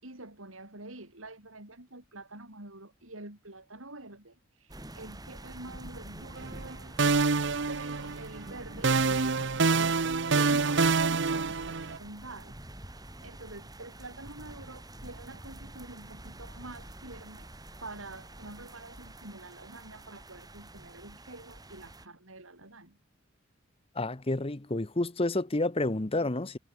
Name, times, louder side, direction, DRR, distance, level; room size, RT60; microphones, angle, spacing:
voice 1, 0.0-6.8 7.7-9.0 9.2-10.0 10.3-17.5 17.8-23.0, right 2 dB, 90° right, 6.9 m, -47 dB
sound 1, 4.7-22.1, right 1 dB, 20° right, 4.5 m, -47 dB
sound 2, 6.4-6.7 7.0-8.4 8.8-12.0, right 4 dB, 60° right, 0.9 m, -26 dB
voice 2, 24.0-26.6, left 2 dB, 30° left, 1.0 m, -29 dB
head